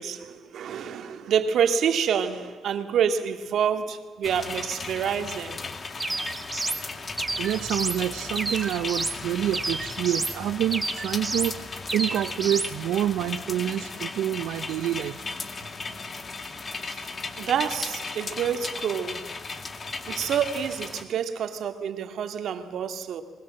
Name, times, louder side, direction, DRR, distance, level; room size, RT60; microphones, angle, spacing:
voice 1, 0.0-5.6 16.8-17.1 17.4-19.2 20.1-23.2, right 8 dB, 70° right, 2.1 m, -27 dB
sound 1, 4.2-21.0, left 4 dB, 35° left, 2.1 m, -36 dB
sound 2, 6.0-6.8 7.2-8.0 8.3-9.2 9.5-10.4 10.7-11.5 11.9-12.7, right 2 dB, 20° right, 1.8 m, -30 dB
voice 2, 7.2-15.2 15.8-16.0, right 12 dB, 85° right, 0.6 m, -28 dB
26.5 x 21.5 x 7.7 m
cardioid pair, 90°, 0 cm